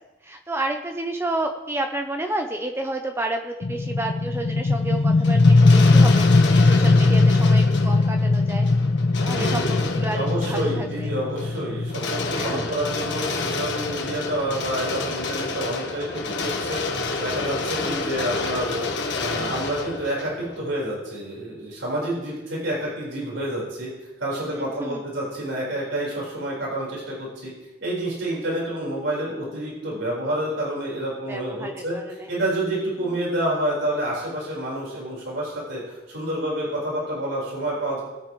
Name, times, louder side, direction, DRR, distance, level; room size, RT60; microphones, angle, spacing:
voice 1, 0.2-8.7 9.2-11.1 12.3-12.7 17.8-18.1 24.5-25.0 31.3-32.3, right 1 dB, 15° right, 4 dB, 0.7 m, -31 dB
sound 1, 3.6-15.1, left 3 dB, 30° left, 0.3 m, -20 dB
sound 2, 5.2-20.8, left 3 dB, 65° left, 1.4 m, -30 dB
voice 2, 9.3-16.8 17.2-23.9 24.2-27.5 27.8-32.0 32.3-38.0, right 1 dB, 70° right, -4 dB, 5.0 m, -28 dB
20.5 x 9.2 x 3.3 m, 1.1 s
head